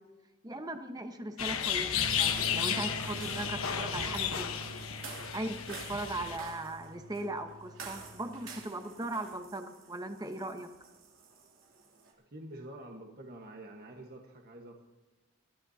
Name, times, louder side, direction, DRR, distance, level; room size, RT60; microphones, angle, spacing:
voice 1, 0.4-4.6 5.3-10.7, right 2 dB, 20° right, 6 dB, 1.1 m, -38 dB
sound 1, 1.4-6.4, left 8 dB, 85° left, 1.2 m, -33 dB
sound 2, 1.6-12.1, right 4 dB, 75° right, 3.0 m, -50 dB
sound 3, 1.9-8.6, right 1 dB, 25° left, 2.1 m, -47 dB
voice 2, 12.3-14.8, right 1 dB, 50° right, 1 dB, 1.4 m, -47 dB
22.0 x 14.0 x 2.8 m, 1.1 s
head